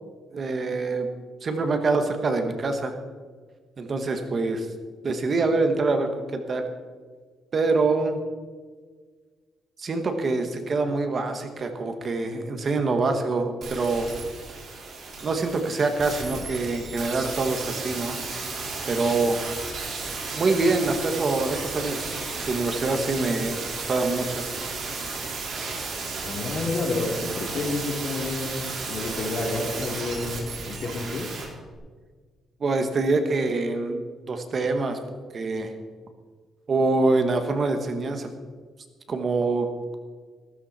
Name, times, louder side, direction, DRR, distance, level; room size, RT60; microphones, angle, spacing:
voice 1, 0.3-1.1 1.4-3.0 3.8-4.7 5.0-6.7 7.5-8.2 9.8-14.1 15.2-18.2 18.9-19.4 20.3-22.2 22.5-23.6 23.9-24.4 29.6-29.7 32.6-34.0 34.3-35.0 35.3-35.7 36.7-38.3 39.1-40.0, right 3 dB, 35° right, 6 dB, 1.4 m, -25 dB
sound 1, 13.6-31.4 31.7-31.8, right 4 dB, 55° right, 4.4 m, -33 dB
voice 2, 26.2-31.3, left 3 dB, 50° left, 1 dB, 3.1 m, -30 dB
15.5 x 13.5 x 4.3 m, 1.5 s
cardioid pair, 145°, 0 cm